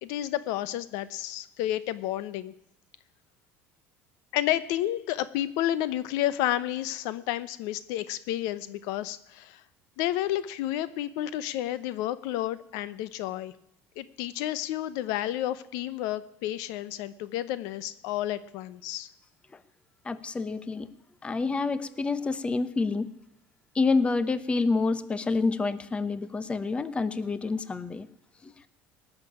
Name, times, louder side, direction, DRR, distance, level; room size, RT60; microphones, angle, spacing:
voice 1, 0.0-2.5 4.3-9.6 10.0-13.5 14.0-19.1, left 13 dB, 75° left, 16 dB, 0.8 m, -31 dB
voice 2, 20.0-20.9 21.2-23.1 23.7-28.1 28.4-28.7, left 3 dB, 20° left, 15 dB, 0.9 m, -28 dB
18.5 x 6.8 x 9.9 m, 0.82 s
cardioid pair, 120°, 6 cm